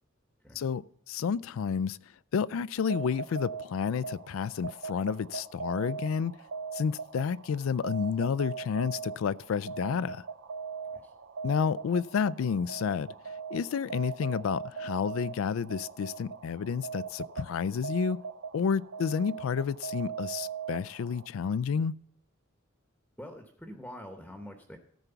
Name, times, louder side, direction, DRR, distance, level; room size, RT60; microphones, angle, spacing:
voice 1, 0.6-2.0 2.3-6.3 6.7-10.2 11.4-13.1 13.5-18.2 18.5-21.9, left 6 dB, 80° left, 0.3 m, -30 dB
sound 1, 2.8-21.3, right 5 dB, 65° right, 0.5 m, -40 dB
voice 2, 23.2-24.8, equal, 5° left, 0.9 m, -45 dB
13.5 x 4.6 x 6.8 m
head